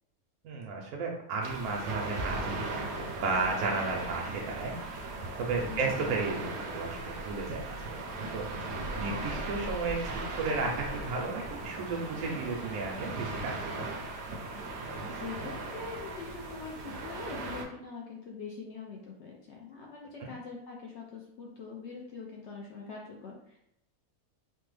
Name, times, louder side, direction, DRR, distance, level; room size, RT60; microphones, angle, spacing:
voice 1, 0.4-4.7 5.4-13.8 20.2-20.3, right 3 dB, 85° right, -1 dB, 1.1 m, -34 dB
sound 1, 1.4-17.6, right 2 dB, 65° right, 0.7 m, -38 dB
voice 2, 5.7-6.0 15.1-23.6, left 5 dB, 65° left, -2 dB, 0.7 m, -43 dB
3.3 x 2.0 x 3.2 m, 0.77 s
omnidirectional pair, 1.5 m